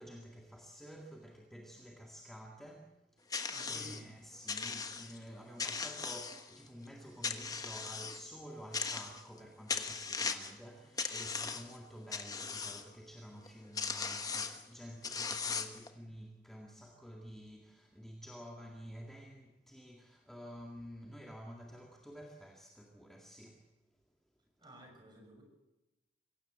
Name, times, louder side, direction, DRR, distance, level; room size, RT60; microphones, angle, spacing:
voice 1, 0.0-23.7, equal, ahead, 2.0 m, -51 dB
sound 1, 3.3-4.0 4.5-5.2 5.6-6.7 7.2-8.2 8.7-9.4 9.7-10.6 11.0-11.8 12.1-12.8 13.5-13.6 13.8-14.6 15.0-15.9, left 5 dB, 20° left, 1.2 m, -38 dB
voice 2, 3.5-4.0 24.6-25.4, equal, 25° right, 6.5 m, -54 dB
24.5 x 16.5 x 8.1 m
head